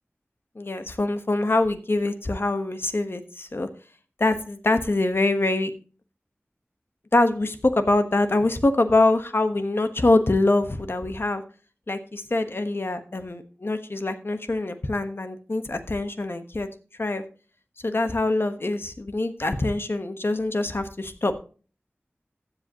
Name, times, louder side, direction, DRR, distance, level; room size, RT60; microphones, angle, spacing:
voice 1, 0.5-3.7 4.2-5.7 7.1-11.4 11.9-16.7 17.0-17.2 17.8-21.3, left 2 dB, 60° left, 8 dB, 1.2 m, -24 dB
15.0 x 7.9 x 2.9 m, 0.38 s
wide cardioid pair, 40°, 5 cm